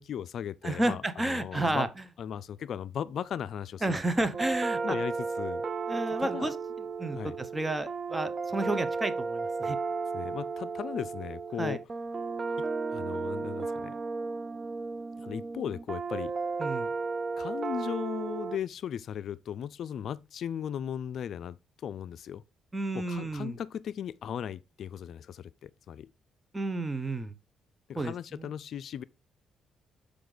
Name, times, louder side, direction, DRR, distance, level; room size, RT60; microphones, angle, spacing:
voice 1, 0.0-1.9 2.2-4.3 4.8-5.6 6.2-6.5 7.1-7.4 10.1-11.8 12.6-14.0 15.2-16.3 17.4-21.6 21.8-22.4 22.9-26.1 27.9-29.0, left 9 dB, 65° left, 0.3 m, -37 dB
voice 2, 0.6-1.9 3.8-5.0 5.9-6.5 7.0-9.8 11.6-11.8 16.6-16.9 22.7-23.6 26.5-27.3 27.9-28.5, right 2 dB, 15° right, 0.9 m, -31 dB
sound 1, 4.3-18.6, right 4 dB, 40° right, 0.5 m, -34 dB
6.6 x 5.0 x 3.9 m
cardioid pair, 90°, 0 cm